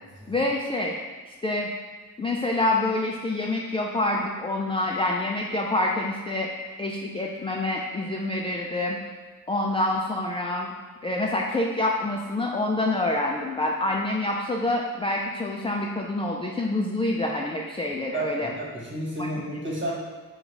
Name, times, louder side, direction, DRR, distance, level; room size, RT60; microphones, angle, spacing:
voice 1, 0.3-0.9 1.4-1.7 2.2-6.5 6.8-9.0 9.5-10.7 11.0-18.5 19.2-19.3 19.9-20.0, left 2 dB, 15° left, -1 dB, 0.3 m, -27 dB
voice 2, 18.1-19.9, right 1 dB, 30° right, -4 dB, 1.4 m, -31 dB
3.9 x 2.4 x 4.6 m, 1.4 s
cardioid pair, 65°, 38 cm